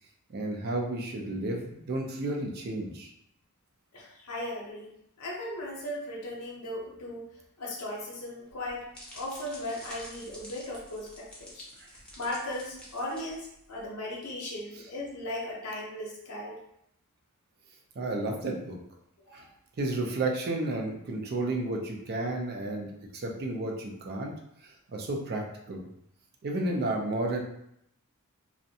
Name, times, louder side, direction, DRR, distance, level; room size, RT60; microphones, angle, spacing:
voice 1, 0.3-3.1 11.8-11.9 18.0-18.8 19.3-19.4 19.8-24.3 24.6-25.8 26.4-27.4, right 2 dB, 45° right, 1 dB, 0.4 m, -32 dB
voice 2, 3.9-4.9 5.2-7.3 7.6-8.8 9.1-11.7 12.2-16.6 19.3-19.5, left 1 dB, 85° left, -3 dB, 0.6 m, -37 dB
sound 1, 8.5-13.8, left 1 dB, 5° left, 0.6 m, -49 dB
2.5 x 2.1 x 2.6 m, 0.76 s
head